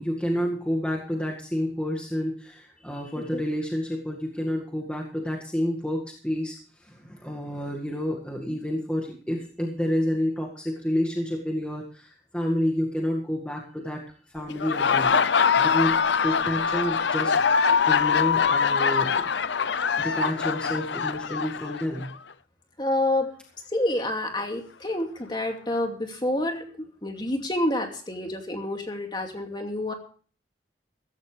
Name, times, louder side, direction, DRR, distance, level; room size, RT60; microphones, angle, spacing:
voice 1, 0.0-14.0 14.3-15.2 15.6-19.3 20.0-22.1, equal, 5° left, -1 dB, 1.9 m, -29 dB
Laughter, 14.5-22.1, left 6 dB, 70° left, 0.6 m, -23 dB
voice 2, 22.8-23.3 23.7-29.9, left 1 dB, 25° left, 3 dB, 2.5 m, -28 dB
15.5 x 15.0 x 3.4 m, 0.42 s
head